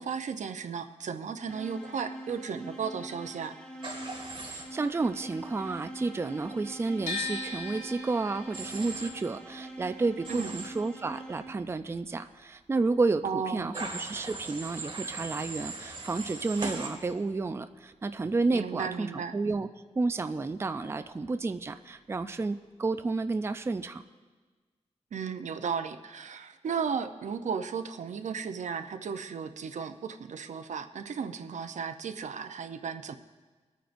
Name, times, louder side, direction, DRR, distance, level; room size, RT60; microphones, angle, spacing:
voice 1, 0.0-3.5 10.3-10.6 13.2-13.7 18.5-19.3 25.1-33.1, right 6 dB, 85° right, 8 dB, 0.6 m, -35 dB
sound 1, 1.5-11.8, right 1 dB, 10° left, 1.2 m, -44 dB
Human voice / Train, 3.8-4.6 8.5-9.1 10.2-10.7 13.7-16.9, right 3 dB, 45° right, 2.2 m, -39 dB
voice 2, 4.4-19.7 20.0-24.0, right 3 dB, 20° right, 9 dB, 0.3 m, -31 dB
sound 2, 7.1-13.1 13.4-14.7, left 3 dB, 80° left, 2.0 m, -41 dB
23.0 x 9.1 x 2.6 m, 1.4 s
wide cardioid pair, 145°, 12 cm